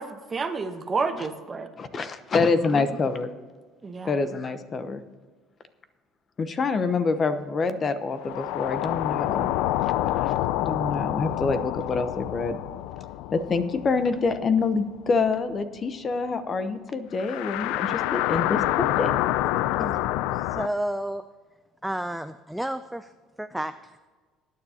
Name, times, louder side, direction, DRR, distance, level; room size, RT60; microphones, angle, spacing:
voice 1, 0.0-1.7 2.7-2.8 3.8-4.2, right 4 dB, 25° right, 7 dB, 1.0 m, -30 dB
voice 2, 1.8-3.3 4.0-5.0 6.4-9.5 10.1-12.6 13.3-18.6 19.0-19.2, left 4 dB, 30° left, 11 dB, 0.8 m, -26 dB
sound 1, 8.2-14.8 15.1-15.2 17.2-20.7, left 14 dB, 80° left, 0.4 m, -27 dB
voice 3, 20.3-21.3 21.8-23.1 23.4-24.0, right 1 dB, 5° right, 9 dB, 0.4 m, -31 dB
19.5 x 9.5 x 2.8 m, 1.4 s
cardioid pair, 130°, 0 cm